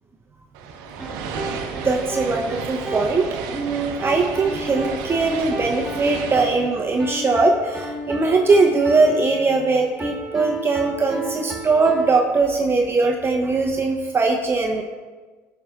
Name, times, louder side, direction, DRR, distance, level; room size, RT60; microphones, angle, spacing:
sound 1, 0.5-8.0, right 5 dB, 75° right, 0.8 m, -33 dB
sound 2, 1.0-12.2, right 1 dB, ahead, 2.4 m, -33 dB
voice 1, 1.8-14.8, right 3 dB, 30° right, 1 dB, 0.7 m, -20 dB
13.5 x 5.7 x 2.4 m, 1.4 s
hypercardioid pair, 65°, 8 cm